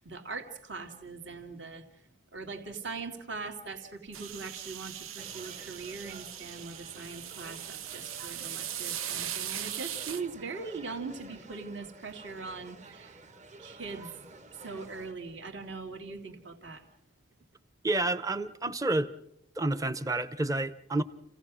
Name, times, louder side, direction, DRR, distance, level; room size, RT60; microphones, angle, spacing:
voice 1, 0.0-2.0 2.3-13.2 13.6-14.1 14.5-16.9, right 4 dB, 60° right, 2.4 m, -41 dB
sound 1, 4.1-10.2, right 10 dB, 90° right, 1.1 m, -39 dB
sound 2, 5.2-15.1, right 2 dB, 35° right, 1.3 m, -51 dB
voice 2, 17.8-19.1 19.6-21.0, right 2 dB, 15° right, 0.7 m, -29 dB
30.0 x 16.5 x 6.2 m
head